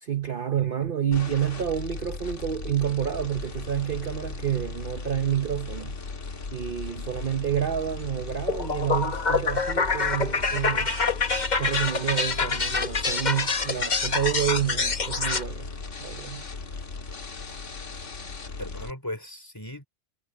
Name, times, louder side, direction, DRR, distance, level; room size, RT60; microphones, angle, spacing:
voice 1, 0.0-6.0 6.5-10.9 11.6-15.7 16.0-16.5, right 10 dB, 50° right, 0.9 m, -29 dB
voice 2, 0.5-0.9 18.6-19.9, left 1 dB, 15° left, 3.3 m, -38 dB
sound 1, 1.1-18.9, left 4 dB, 65° left, 2.0 m, -37 dB
sound 2, 8.5-15.4, left 4 dB, 35° left, 1.3 m, -26 dB
omnidirectional pair, 1.3 m